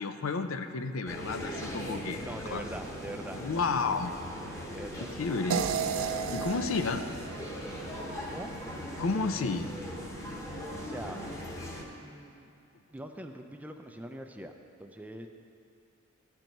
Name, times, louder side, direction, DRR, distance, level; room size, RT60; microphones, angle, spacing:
voice 1, 0.0-2.6 3.4-4.3 5.0-5.7 6.3-7.0 9.0-9.7, left 4 dB, 75° left, 8 dB, 0.5 m, -32 dB
sound 1, 1.1-11.8, equal, 15° left, 1.1 m, -39 dB
voice 2, 1.8-3.4 4.7-5.1 6.5-7.0 8.3-8.5 10.8-11.2 12.0-12.5 12.9-14.5 14.8-15.3, right 1 dB, 10° right, 5 dB, 0.4 m, -43 dB
sound 2, 5.5-8.6, right 6 dB, 75° right, 0.4 m, -34 dB
13.5 x 4.6 x 5.2 m, 2.5 s
head